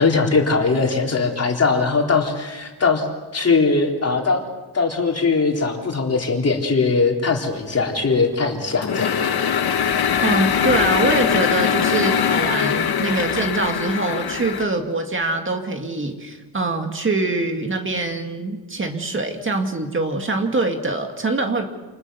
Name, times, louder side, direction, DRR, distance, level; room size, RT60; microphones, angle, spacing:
voice 1, 0.0-3.1 3.3-4.4 4.7-9.2, left 4 dB, 35° left, 1 dB, 3.7 m, -20 dB
sound 1, 8.8-14.6, left 8 dB, 65° left, 1.6 m, -21 dB
voice 2, 10.2-21.7, right 2 dB, 30° right, 4 dB, 2.1 m, -24 dB
29.0 x 29.0 x 7.0 m, 1.2 s
wide cardioid pair, 180°, 41 cm